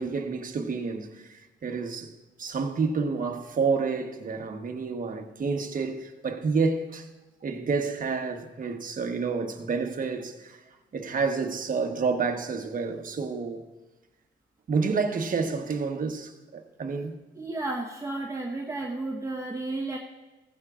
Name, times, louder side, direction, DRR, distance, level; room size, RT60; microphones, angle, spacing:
voice 1, 0.0-2.1 2.4-7.1 7.4-10.6 10.9-13.6 14.7-17.2, right 4 dB, 45° right, 1.2 m, -29 dB
voice 2, 17.4-20.0, right 2 dB, 15° right, 1.2 m, -32 dB
15.5 x 15.0 x 2.5 m
cardioid pair, 90°, 20 cm